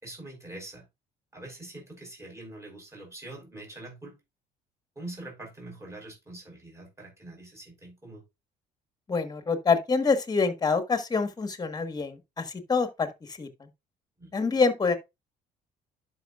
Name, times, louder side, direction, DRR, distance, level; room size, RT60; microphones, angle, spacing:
voice 1, 0.0-0.9 1.3-4.2 5.0-8.2 14.2-14.3, right 2 dB, 15° right, 5.2 m, -44 dB
voice 2, 9.1-13.7 14.3-15.0, left 4 dB, 25° left, 1.5 m, -26 dB
11.0 x 5.7 x 2.5 m
cardioid pair, 110°, 17 cm